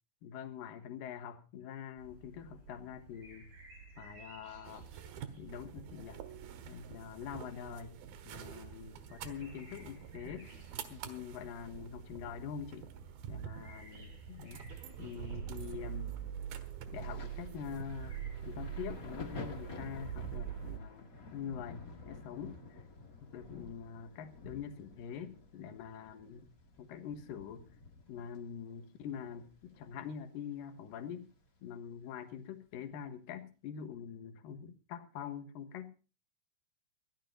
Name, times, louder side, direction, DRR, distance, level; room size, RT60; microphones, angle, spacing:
voice 1, 0.2-3.5 4.0-4.9 5.4-6.2 6.7-8.0 8.2-10.5 10.9-12.9 13.3-14.7 15.0-16.2 16.9-22.8 23.2-26.5 26.8-27.7 28.1-31.3 31.6-35.9, left 8 dB, 70° left, 8 dB, 2.9 m, -45 dB
sound 1, 2.0-18.3, right 2 dB, 60° right, 6.7 m, -56 dB
sound 2, 4.7-20.8, right 9 dB, 80° right, 3.3 m, -45 dB
Thunder, 16.9-30.3 30.6-31.9 32.7-32.9, left 3 dB, 30° left, 1.8 m, -51 dB
22.5 x 16.5 x 2.7 m, 0.33 s
omnidirectional pair, 4.3 m